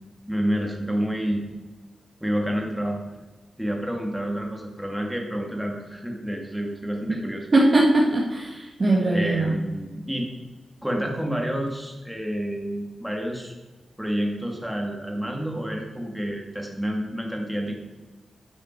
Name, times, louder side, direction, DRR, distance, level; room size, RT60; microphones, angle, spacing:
voice 1, 0.3-1.4 2.2-3.0 3.6-7.5 9.1-10.3 10.8-13.5 14.0-17.8, equal, 5° right, 1 dB, 2.2 m, -29 dB
voice 2, 7.5-9.6, right 2 dB, 40° right, -3 dB, 1.8 m, -20 dB
11.0 x 8.8 x 4.6 m, 1.2 s
wide cardioid pair, 100°, 0 cm